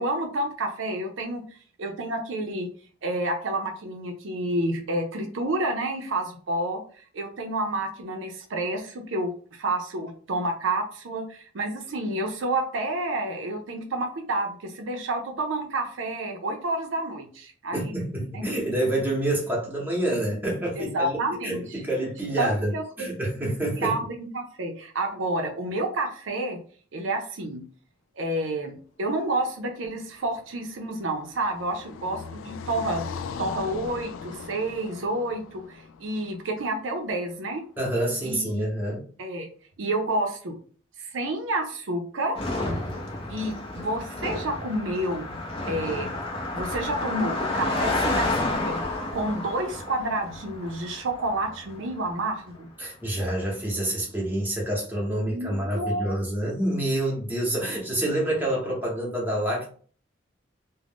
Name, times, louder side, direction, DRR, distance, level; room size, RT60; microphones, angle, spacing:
voice 1, 0.0-1.4 1.8-2.7 3.0-18.0 18.3-18.4 20.8-21.8 22.4-23.1 23.4-26.6 26.9-27.6 28.2-33.0 33.4-37.6 38.2-38.7 39.2-39.5 39.8-40.6 41.0-42.5 43.3-45.4 45.7-46.1 46.5-52.7 55.3-56.1, right 2 dB, 75° right, 4 dB, 0.5 m, -29 dB
voice 2, 17.7-21.1 21.4-24.0 37.8-39.0 52.8-59.7, right 1 dB, 10° right, -3 dB, 0.8 m, -27 dB
Car passing by, 30.0-37.2, left 5 dB, 90° left, 0.3 m, -40 dB
Car passing by 2, 42.4-51.9, left 2 dB, 30° left, 0.6 m, -30 dB
2.4 x 2.0 x 3.4 m, 0.43 s
head